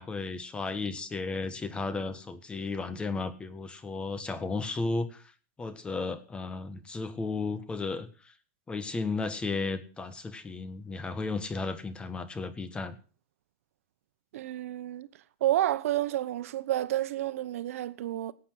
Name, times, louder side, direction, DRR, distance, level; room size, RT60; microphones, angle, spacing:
voice 1, 0.0-5.2 5.6-8.1 8.7-12.9, left 3 dB, 15° left, 1.5 m, -34 dB
voice 2, 14.3-15.1 15.4-18.3, right 13 dB, 80° right, 1.0 m, -30 dB
18.0 x 8.4 x 6.2 m
supercardioid pair, 145°, 7 cm